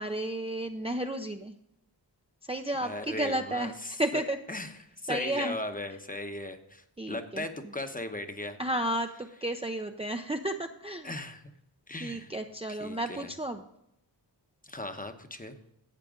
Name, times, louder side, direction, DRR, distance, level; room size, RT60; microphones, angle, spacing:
voice 1, 0.0-1.5 2.5-3.7 4.0-4.4 5.1-5.6 7.0-7.4 8.6-11.1 12.0-13.6, right 1 dB, 15° right, 5 dB, 0.5 m, -32 dB
voice 2, 2.8-4.2 4.5-4.7 5.0-8.6 11.0-11.5 11.9-12.3 12.7-13.3 14.6-15.5, left 2 dB, 20° left, 7 dB, 0.9 m, -38 dB
12.0 x 8.2 x 3.7 m, 0.79 s
wide cardioid pair, 75°, 44 cm